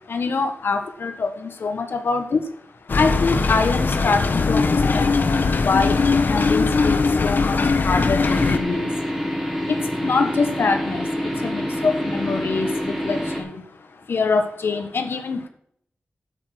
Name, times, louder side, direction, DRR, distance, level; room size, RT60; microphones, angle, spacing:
voice 1, 0.0-15.5, left 4 dB, 80° left, 7 dB, 1.4 m, -25 dB
sound 1, 2.9-8.6, left 4 dB, 60° left, 1.1 m, -20 dB
sound 2, 8.2-13.4, equal, 5° right, 3.0 m, -26 dB
8.8 x 8.8 x 6.2 m, 0.68 s
wide cardioid pair, 85°, 4 cm